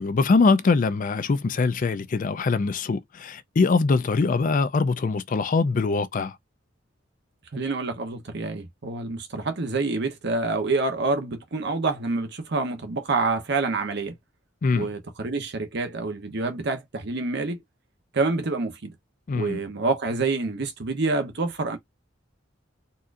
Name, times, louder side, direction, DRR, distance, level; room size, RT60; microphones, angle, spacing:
voice 1, 0.0-6.4 14.6-14.9 19.3-19.6, left 4 dB, 45° left, 0.4 m, -23 dB
voice 2, 7.5-14.2 14.7-17.6 18.1-19.0 19.3-21.8, right 3 dB, 60° right, 0.8 m, -27 dB
4.1 x 2.4 x 2.5 m
head